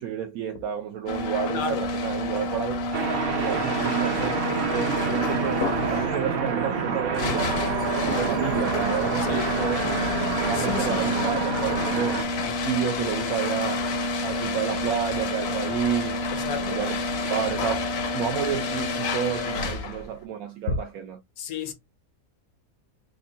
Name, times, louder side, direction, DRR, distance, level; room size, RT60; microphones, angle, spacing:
voice 1, 0.0-2.8 3.4-7.7 8.0-10.1 10.4-13.9 14.2-17.9 18.1-21.2, right 9 dB, 75° right, 1.1 m, -30 dB
sound 1, 1.1-20.1, left 2 dB, 55° left, 0.8 m, -29 dB
voice 2, 1.5-1.9 9.2-9.5 10.5-11.0 16.3-16.8 20.7-20.8 21.4-21.7, left 5 dB, 75° left, 1.2 m, -31 dB
sound 2, 2.9-12.2, right 5 dB, 50° right, 0.8 m, -28 dB
3.5 x 2.2 x 3.8 m
omnidirectional pair, 1.5 m